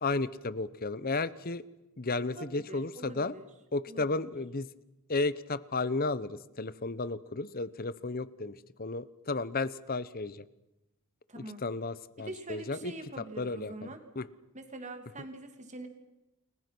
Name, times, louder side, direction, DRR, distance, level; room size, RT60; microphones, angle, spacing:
voice 1, 0.0-1.6 2.0-3.3 3.7-4.7 5.1-10.4 11.4-12.9 13.4-13.7 14.2-14.3, left 3 dB, 40° left, 17 dB, 1.0 m, -33 dB
voice 2, 2.3-3.5 3.9-4.2 11.3-11.7 12.2-14.0 14.5-15.9, right 2 dB, 30° right, 6 dB, 3.0 m, -44 dB
30.0 x 21.5 x 6.2 m, 0.95 s
head